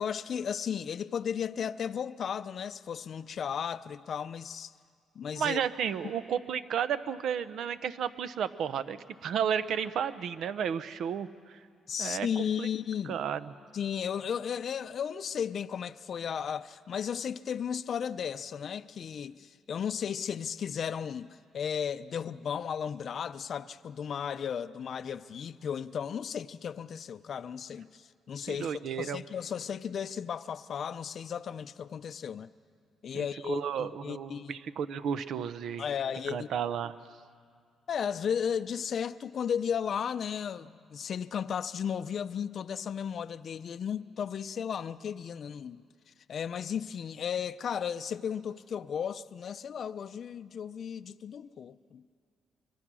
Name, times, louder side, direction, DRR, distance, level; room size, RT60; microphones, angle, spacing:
voice 1, 0.0-4.7 5.2-5.6 11.9-13.1 13.7-32.5 33.0-34.5 35.8-36.5 37.9-45.8 46.1-52.0, left 8 dB, 55° left, 0.5 m, -35 dB
voice 2, 5.4-11.6 12.0-12.7 13.1-13.5 28.5-29.2 33.1-35.8 36.3-36.9, right 8 dB, 70° right, 0.8 m, -33 dB
25.0 x 23.0 x 6.2 m
cardioid pair, 90°, 0 cm